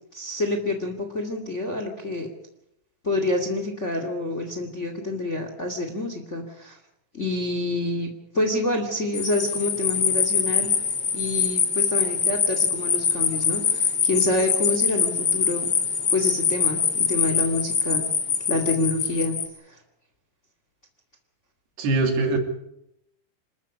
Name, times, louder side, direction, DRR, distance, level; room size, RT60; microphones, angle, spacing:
voice 1, 0.1-2.3 3.0-6.8 7.1-10.8 11.1-15.7 16.1-18.1 18.5-19.4 19.7-19.8, left 2 dB, 25° left, 5 dB, 2.0 m, -27 dB
sound 1, 9.1-19.4, left 7 dB, 45° left, 2.8 m, -24 dB
voice 2, 21.8-22.4, right 3 dB, 85° right, 4 dB, 4.8 m, -22 dB
26.0 x 14.0 x 8.5 m, 0.79 s
omnidirectional pair, 4.6 m